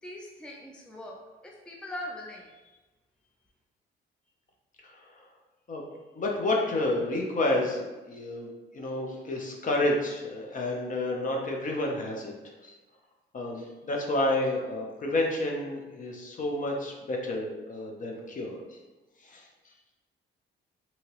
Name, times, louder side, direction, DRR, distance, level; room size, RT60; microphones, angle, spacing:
voice 1, 0.0-2.6, left 1 dB, 5° left, -1 dB, 0.4 m, -41 dB
voice 2, 4.8-5.2 5.7-5.8 6.1-12.3 12.6-12.8 13.3-18.8 19.2-19.5, left 1 dB, 40° left, 0 dB, 0.7 m, -30 dB
2.8 x 2.8 x 2.9 m, 1.2 s
cardioid pair, 90°, 20 cm